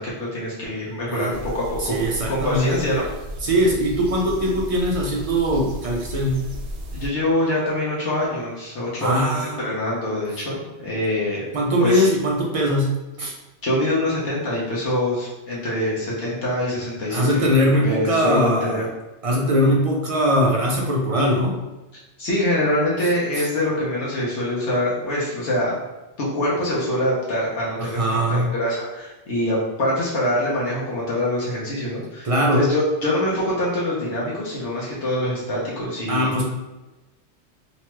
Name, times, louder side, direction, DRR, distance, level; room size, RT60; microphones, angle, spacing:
voice 1, 0.0-2.0 2.3-3.0 6.9-11.5 11.8-12.1 13.6-17.4 17.8-18.8 22.2-25.7 26.2-28.0 28.3-36.4, left 1 dB, 75° left, -6 dB, 1.1 m, -24 dB
sound 1, 1.3-7.1, equal, 80° right, 0.9 m, -34 dB
voice 2, 1.8-2.9 3.4-6.5 9.0-9.6 11.5-13.3 17.1-18.9 19.2-21.6 23.3-23.5 27.8-28.5 32.2-32.7 36.1-36.4, equal, 55° right, -2 dB, 0.4 m, -21 dB
3.0 x 2.2 x 2.9 m, 1.1 s
omnidirectional pair, 1.2 m